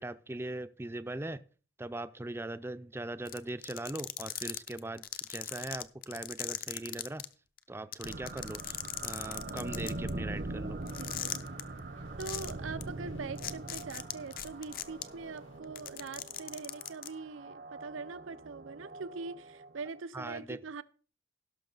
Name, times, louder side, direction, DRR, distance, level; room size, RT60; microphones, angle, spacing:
voice 1, 0.0-1.4 1.8-7.3 7.7-10.8 20.1-20.6, right 2 dB, 10° right, 0.4 m, -40 dB
sound 1, 3.3-7.2 7.6-7.7 7.9-10.1 10.9-11.6 12.2-12.5 12.8-12.9 13.4-15.0 15.6-17.1, left 12 dB, 50° left, 0.7 m, -38 dB
sound 2, 8.0-20.0, right 2 dB, 55° right, 0.7 m, -42 dB
sound 3, 8.3-15.6, left 2 dB, 80° left, 1.9 m, -62 dB
voice 2, 11.0-11.4 12.2-20.8, right 4 dB, 90° right, 0.6 m, -43 dB
17.0 x 6.2 x 3.9 m
head